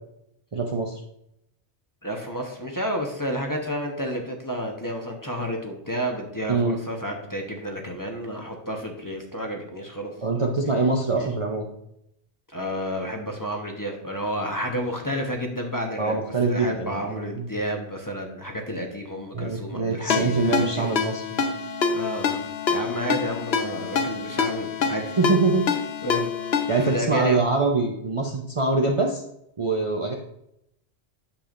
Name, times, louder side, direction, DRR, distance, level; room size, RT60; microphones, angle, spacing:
voice 1, 0.5-1.0 6.5-6.8 10.2-11.7 16.0-17.5 19.3-21.4 25.2-25.7 26.7-29.2 29.6-30.2, right 3 dB, 35° right, 0 dB, 0.6 m, -24 dB
voice 2, 2.0-10.5 11.1-11.3 12.5-20.9 21.9-22.4 22.7-25.2 26.0-26.3 26.8-27.4, equal, 20° left, 1 dB, 0.9 m, -31 dB
Ringtone, 20.1-27.0, left 5 dB, 65° left, 1.0 m, -26 dB
9.1 x 6.9 x 2.5 m, 0.79 s
omnidirectional pair, 1.2 m